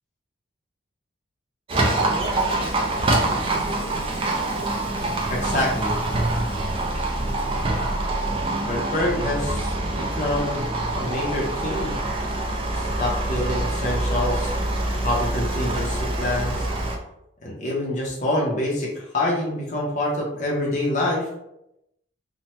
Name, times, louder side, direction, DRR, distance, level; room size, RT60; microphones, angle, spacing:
Livestock farm animals working animals, 1.7-17.0, right 2 dB, 25° right, 0.4 m, -25 dB
voice 1, 5.3-6.0 8.7-10.6 10.9-11.9 12.7-14.5 15.0-16.7 17.4-21.3, left 1 dB, 35° left, -3 dB, 0.6 m, -26 dB
2.9 x 2.1 x 3.0 m, 0.83 s
head